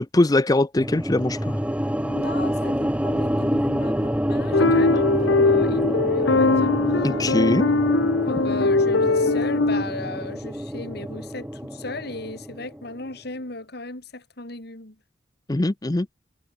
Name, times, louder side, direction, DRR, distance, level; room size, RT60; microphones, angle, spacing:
voice 1, 0.0-1.6 7.0-7.7 15.5-16.1, left 2 dB, 20° left, 0.6 m, -21 dB
sound 1, 0.8-13.0, equal, 5° right, 2.5 m, -27 dB
voice 2, 2.0-6.7 8.2-15.0, left 2 dB, 60° left, 3.4 m, -36 dB
sound 2, 4.5-9.8, left 3 dB, 85° left, 1.0 m, -20 dB
head